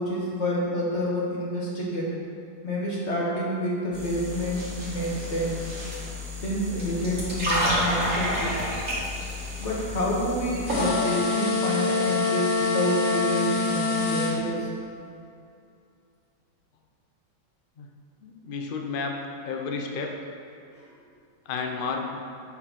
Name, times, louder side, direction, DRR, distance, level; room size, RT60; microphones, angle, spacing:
voice 1, 0.0-2.1 2.6-5.7 6.4-8.5 9.6-14.7, equal, 45° left, -5 dB, 1.7 m, -28 dB
sound 1, 3.9-10.9, left 1 dB, 50° right, 2.2 m, -30 dB
sound 2, 10.7-14.4, left 4 dB, 60° left, 1.4 m, -25 dB
voice 2, 18.2-19.2 19.5-20.2 21.5-22.2, left 4 dB, 85° left, 2 dB, 0.4 m, -31 dB
7.3 x 4.5 x 5.8 m, 2.5 s
omnidirectional pair, 1.8 m